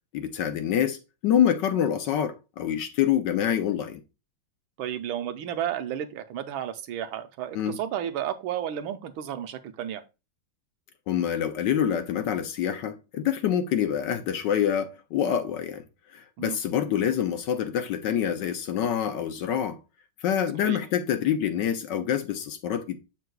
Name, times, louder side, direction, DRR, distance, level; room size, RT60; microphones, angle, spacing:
voice 1, 0.1-4.0 7.5-7.8 11.1-15.8 16.1-19.8 20.2-23.0, left 9 dB, 70° left, 1.2 m, -26 dB
voice 2, 4.8-10.0 16.4-16.6 20.6-20.8, right 10 dB, 85° right, 1.5 m, -32 dB
7.9 x 5.9 x 2.3 m
omnidirectional pair, 2.2 m